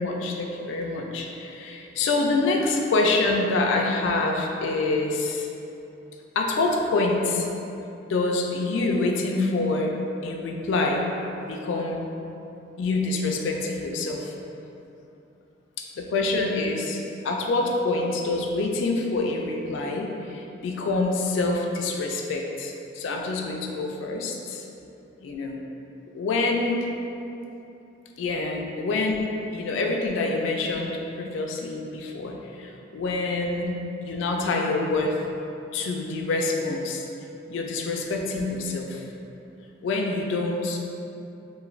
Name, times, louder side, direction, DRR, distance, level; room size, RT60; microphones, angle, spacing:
voice 1, 0.0-5.5 6.4-7.5 8.0-9.9 10.2-11.1 11.4-12.0 12.8-14.3 15.8-24.7 25.2-25.6 26.1-26.9 28.2-33.7 34.0-35.2 35.7-37.1 37.5-39.0 39.8-40.8, left 3 dB, 70° left, 1 dB, 0.3 m, -26 dB
3.0 x 2.5 x 2.4 m, 2.8 s
head